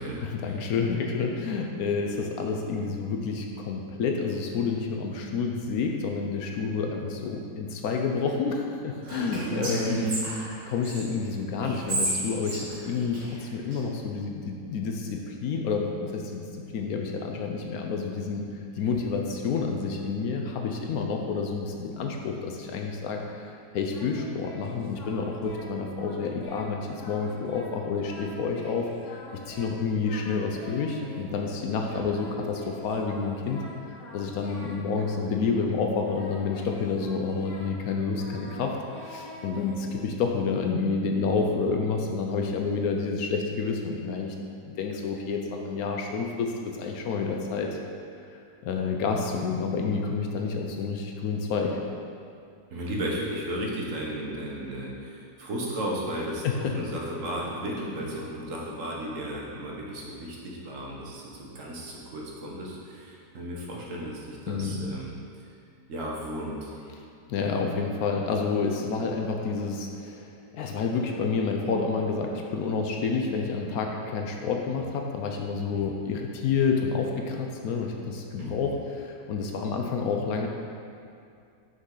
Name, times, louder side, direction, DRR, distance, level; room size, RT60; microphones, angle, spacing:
voice 1, 0.2-10.3 10.7-16.4 16.7-18.5 18.8-23.5 23.7-33.6 34.1-38.8 39.0-44.3 44.6-47.8 48.6-51.8 56.4-56.6 64.5-64.9 67.3-80.5, left 4 dB, 70° left, 2 dB, 1.0 m, -29 dB
voice 2, 9.0-10.1 18.8-18.9 31.9-32.0 52.7-65.5 65.9-66.7 74.7-74.8 78.4-78.6, right 1 dB, 55° right, -3 dB, 1.3 m, -34 dB
Whispering, 9.0-11.0 11.6-13.8, right 1 dB, 75° right, 2.5 m, -32 dB
Singing, 23.9-25.7 26.0-26.7 27.0-29.7 30.0-31.5 32.1-35.7 36.0-40.4, left 1 dB, 50° left, 1.3 m, -46 dB
6.2 x 5.6 x 3.8 m, 2.4 s
omnidirectional pair, 1.8 m